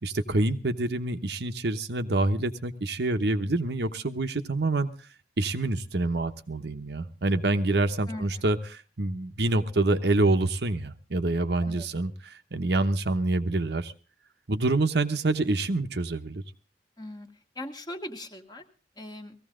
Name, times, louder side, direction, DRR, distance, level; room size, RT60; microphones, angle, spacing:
voice 1, 0.0-4.9 5.4-13.9 14.5-16.4, right 2 dB, 70° right, 8 dB, 0.9 m, -26 dB
voice 2, 17.0-17.3 17.5-18.6 19.0-19.3, left 1 dB, 25° left, 5 dB, 1.4 m, -39 dB
18.0 x 15.0 x 3.8 m, 0.35 s
head